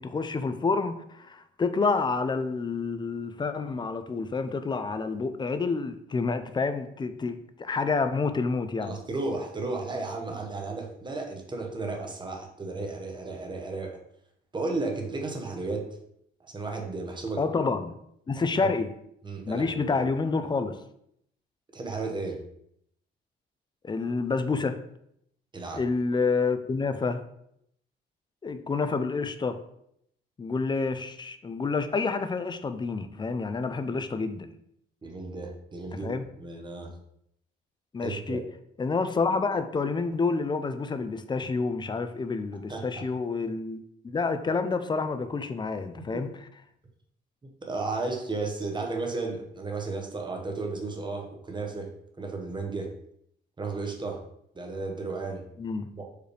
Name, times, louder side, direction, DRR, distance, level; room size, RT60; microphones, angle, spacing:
voice 1, 0.0-9.0 17.4-18.0 18.3-18.9 19.4-20.8 23.8-24.8 25.7-27.2 28.4-29.6 30.4-34.5 36.0-36.3 37.9-38.4 38.8-43.8 44.0-46.3 55.6-55.9, left 4 dB, 25° left, 0.4 m, -28 dB
voice 2, 8.8-14.0 14.5-16.0 16.4-17.4 18.4-18.7 19.2-20.0 21.7-22.4 25.5-25.8 35.0-36.9 38.0-38.4 42.7-42.9 46.1-46.2 47.4-51.9 52.2-52.9 53.6-54.2 54.5-55.4 55.9-56.1, right 3 dB, 25° right, 0.9 m, -34 dB
4.7 x 3.1 x 3.2 m
cardioid pair, 90°, 20 cm